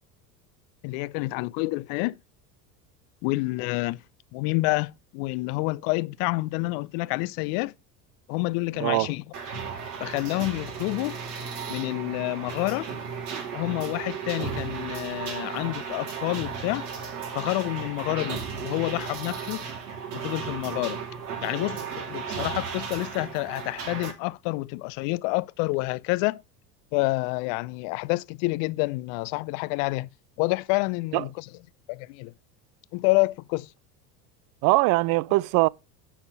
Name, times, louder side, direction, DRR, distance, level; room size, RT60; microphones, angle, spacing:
voice 1, 0.8-2.2 3.2-4.0 4.3-7.7 8.3-9.2 10.0-11.2 11.7-12.9 13.5-16.9 17.3-19.6 20.1-21.0 21.4-26.4 26.9-30.1 30.4-31.4 31.9-32.3 32.9-33.7, left 23 dB, 55° left, 0.6 m, -28 dB
voice 2, 8.8-9.1 31.1-31.2 34.6-35.7, right 22 dB, 45° right, 0.5 m, -21 dB
sound 1, 9.3-24.1, right 6 dB, 70° right, 3.1 m, -35 dB
10.0 x 4.4 x 6.7 m
hypercardioid pair, 80°, 47 cm